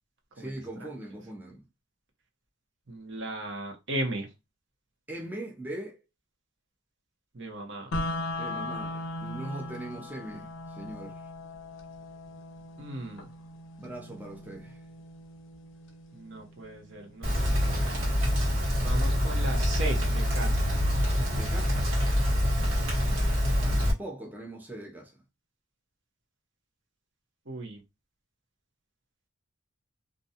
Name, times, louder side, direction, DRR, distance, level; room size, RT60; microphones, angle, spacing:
voice 1, 0.4-1.7 5.1-6.0 8.4-11.3 13.8-14.8 21.3-22.0 22.9-25.2, right 1 dB, 10° right, 0.5 m, -41 dB
voice 2, 2.9-4.3 7.3-8.0 12.8-13.3 16.1-17.9 18.8-20.7 22.5-22.7 27.4-27.8, right 1 dB, 65° right, 0.9 m, -37 dB
sound 1, 7.9-17.9, left 1 dB, 70° left, 0.5 m, -39 dB
Rain, 17.2-23.9, left 1 dB, 85° right, 1.3 m, -26 dB
2.5 x 2.2 x 2.8 m
head